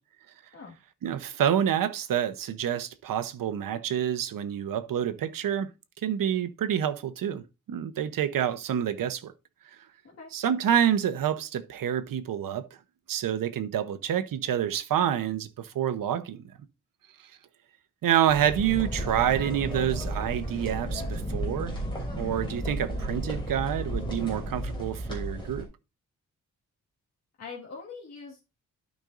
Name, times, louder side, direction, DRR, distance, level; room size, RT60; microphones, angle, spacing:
voice 1, 1.0-5.7 6.0-9.3 10.3-12.7 13.1-16.5 18.0-21.7 22.1-25.7, right 10 dB, 90° right, 0.9 m, -28 dB
sound 1, 18.3-25.6, right 1 dB, 15° left, 3.0 m, -33 dB
voice 2, 27.4-28.4, left 5 dB, 50° left, 1.8 m, -42 dB
12.0 x 5.2 x 2.5 m
wide cardioid pair, 170°, 32 cm